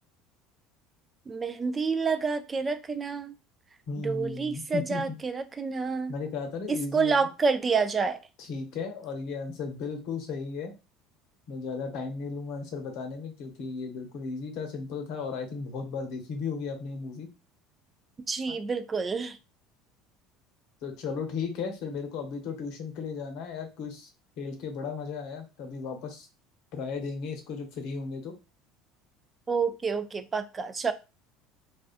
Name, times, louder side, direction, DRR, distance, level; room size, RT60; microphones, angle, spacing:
voice 1, 1.3-3.3 4.0-6.1 6.9-8.2 18.3-19.4 29.5-30.9, right 5 dB, 25° right, 0.3 m, -28 dB
voice 2, 3.9-5.2 6.1-7.3 8.4-10.7 11.5-17.3 18.5-18.6 20.8-24.1 24.4-26.3 26.7-28.3, left 5 dB, 65° left, 0.7 m, -35 dB
2.3 x 2.3 x 2.4 m
hypercardioid pair, 70°, 0 cm